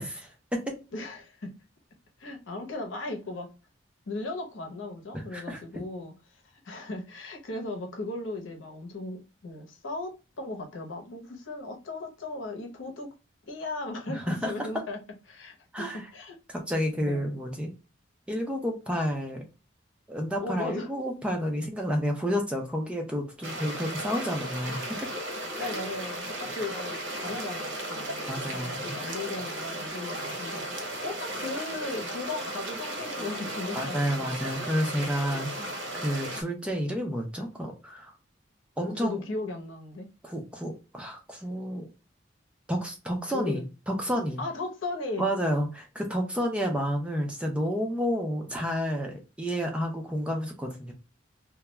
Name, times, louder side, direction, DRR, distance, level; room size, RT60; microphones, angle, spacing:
voice 1, 0.0-0.7 5.1-5.6 14.1-14.7 15.7-16.0 16.5-17.7 18.3-19.4 20.1-24.8 25.6-25.7 28.3-28.9 33.7-38.1 38.8-39.2 40.2-41.9 42.7-44.4 45.2-50.9, equal, 5° right, 0.4 m, -30 dB
voice 2, 0.9-1.5 2.2-3.5 4.1-13.1 13.4-15.0 15.3-16.4 17.0-17.4 20.4-20.9 25.6-34.4 35.6-35.7 38.8-40.1 43.3-43.6 44.4-45.3, left 2 dB, 85° left, 0.8 m, -37 dB
Babbling Brook at Allegheny State Park, 23.4-36.4, right 1 dB, 85° right, 0.8 m, -35 dB
2.3 x 2.2 x 2.9 m
head